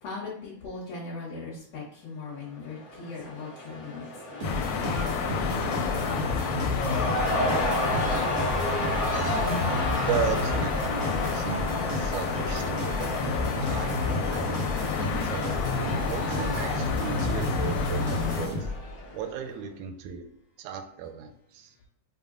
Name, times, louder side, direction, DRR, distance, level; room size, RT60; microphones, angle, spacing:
voice 1, 0.0-8.1, left 3 dB, 65° left, -5 dB, 1.8 m, -40 dB
Cheering / Crowd, 2.5-19.4, left 1 dB, 50° left, 0.8 m, -33 dB
sound 1, 4.4-18.5, left 5 dB, 85° left, 2.0 m, -31 dB
sound 2, 4.4-19.0, left 2 dB, 65° right, 0.9 m, -32 dB
voice 2, 10.1-14.8 15.2-15.5 16.1-18.7 19.1-20.2 20.6-21.7, right 7 dB, 80° right, 6 dB, 1.8 m, -36 dB
5.3 x 2.1 x 3.5 m, 0.69 s
omnidirectional pair, 3.6 m